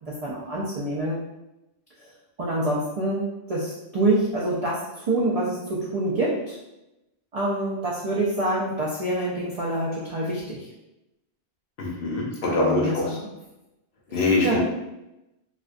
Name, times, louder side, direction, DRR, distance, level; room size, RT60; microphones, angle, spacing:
voice 1, 0.0-1.2 2.0-2.1 2.4-6.6 7.3-10.7 12.4-13.3 14.1-14.6, right 1 dB, 65° right, -5 dB, 0.3 m, -26 dB
voice 2, 11.8-13.0 14.1-14.6, left 3 dB, 60° left, -2 dB, 0.8 m, -23 dB
2.4 x 2.2 x 2.4 m, 0.94 s
omnidirectional pair, 1.1 m